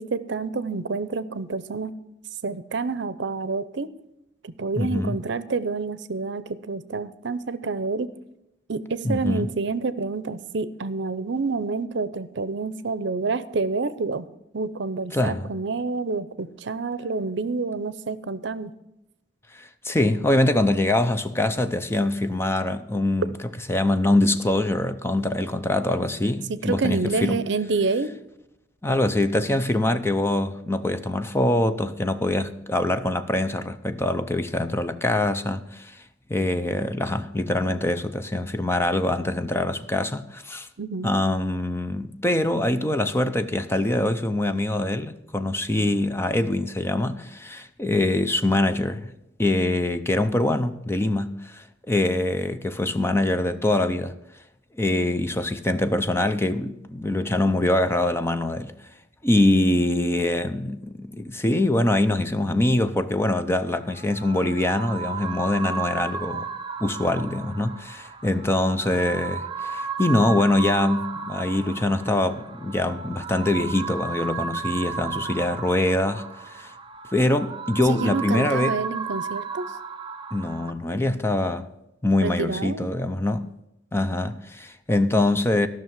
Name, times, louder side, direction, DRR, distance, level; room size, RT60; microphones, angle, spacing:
voice 1, 0.0-1.9 2.4-3.9 4.4-8.1 8.7-14.3 14.5-18.7 26.5-28.1 40.8-41.1 77.9-79.7 82.2-82.9, right 4 dB, 70° right, 0.6 m, -28 dB
voice 2, 4.8-5.2 9.0-9.5 15.1-15.5 19.5-23.3 23.7-27.4 28.8-36.0 36.3-40.7 41.0-49.1 49.4-54.1 54.8-58.7 59.2-66.5 66.8-76.7 77.1-78.8 80.3-81.7 82.0-83.5 83.9-85.7, left 1 dB, 15° left, 0.6 m, -24 dB
sound 1, 63.7-80.7, right 5 dB, 25° right, 0.6 m, -34 dB
14.0 x 6.2 x 7.4 m
head